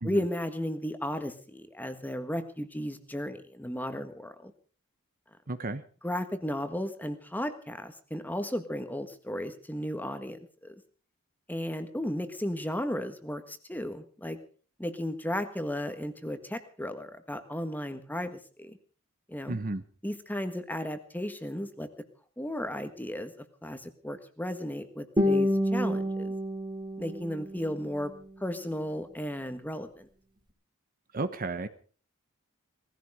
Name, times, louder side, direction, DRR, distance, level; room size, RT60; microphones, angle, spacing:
voice 1, 0.0-4.5 6.0-10.7 11.5-14.4 14.8-18.8 19.3-19.6 20.0-21.9 22.4-23.3 23.6-26.3 27.0-28.1 28.4-30.1, equal, 10° left, 9 dB, 1.5 m, -34 dB
voice 2, 5.5-5.8 19.5-19.8 31.1-31.7, right 2 dB, 40° right, 11 dB, 1.1 m, -33 dB
Guitar, 25.2-28.2, left 1 dB, 20° right, 2.6 m, -29 dB
19.0 x 15.0 x 5.0 m, 0.42 s
head